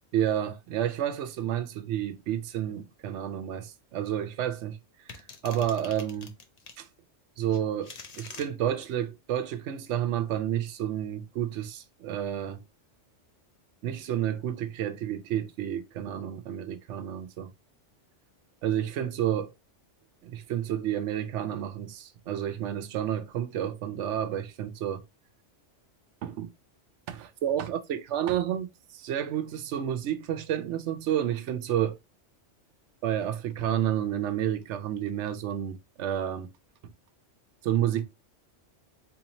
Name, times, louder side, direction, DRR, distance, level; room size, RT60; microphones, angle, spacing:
voice 1, 0.1-4.8 5.4-6.4 6.8-6.9 7.4-12.6 13.8-17.5 18.6-19.5 20.3-25.0 26.2-26.5 27.1-28.7 28.9-32.0 33.0-36.5 36.8-36.9 37.6-38.0, right 10 dB, 75° right, 0.9 m, -30 dB
sound 1, 5.1-6.8 7.5-8.5, left 4 dB, 45° left, 0.5 m, -45 dB
4.2 x 2.8 x 2.8 m
omnidirectional pair, 1.2 m